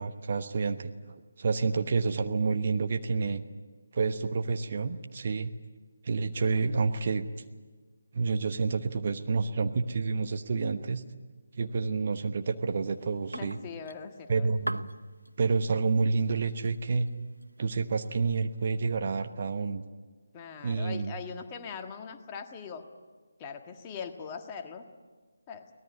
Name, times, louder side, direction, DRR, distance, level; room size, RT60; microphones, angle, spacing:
voice 1, 0.0-3.4 3.9-5.5 6.0-7.3 8.1-11.0 11.5-13.6 14.3-14.9 15.4-17.1 17.6-19.8 20.6-21.1, right 4 dB, 40° right, 7 dB, 1.2 m, -29 dB
sound 1, 12.9-18.8, right 1 dB, 80° right, 0.9 m, -45 dB
voice 2, 13.3-14.5 20.3-22.8 23.4-24.9 25.5-25.7, left 6 dB, 20° left, 4 dB, 1.6 m, -41 dB
24.0 x 19.0 x 9.8 m, 1.4 s
figure-of-eight pair, 150°, 0 cm